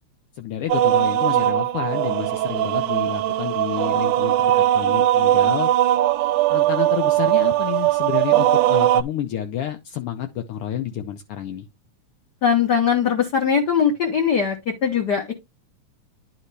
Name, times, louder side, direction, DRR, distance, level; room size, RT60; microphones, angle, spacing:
voice 1, 0.3-5.7 6.5-11.7, left 11 dB, 85° left, 1.2 m, -29 dB
sound 1, 0.7-9.0, right 13 dB, 90° right, 2.1 m, -19 dB
voice 2, 12.4-15.3, left 7 dB, 55° left, 1.1 m, -20 dB
10.5 x 4.2 x 3.3 m
omnidirectional pair, 3.5 m